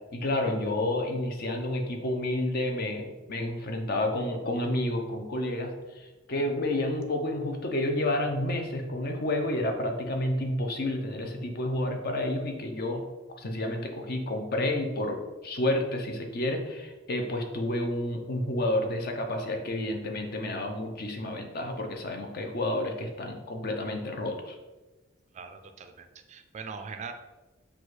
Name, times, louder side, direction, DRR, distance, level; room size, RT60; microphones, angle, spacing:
voice 1, 0.1-13.0 13.3-24.6, left 1 dB, 55° left, 4 dB, 0.6 m, -30 dB
voice 2, 25.3-27.1, right 5 dB, 35° right, 7 dB, 0.3 m, -41 dB
6.1 x 2.3 x 3.1 m, 1.1 s
head